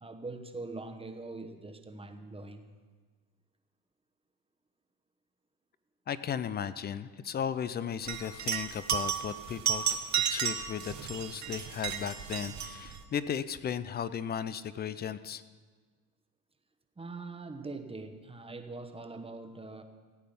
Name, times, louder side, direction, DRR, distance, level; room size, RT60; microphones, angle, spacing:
voice 1, 0.0-2.6 17.0-19.8, right 3 dB, 10° right, 6 dB, 1.0 m, -42 dB
voice 2, 6.1-9.9 10.1-15.4, left 8 dB, 25° left, 15 dB, 0.4 m, -35 dB
sound 1, 8.1-13.0, right 8 dB, 35° right, 1.2 m, -33 dB
16.0 x 8.5 x 5.3 m, 1.5 s
supercardioid pair, 105°, 46 cm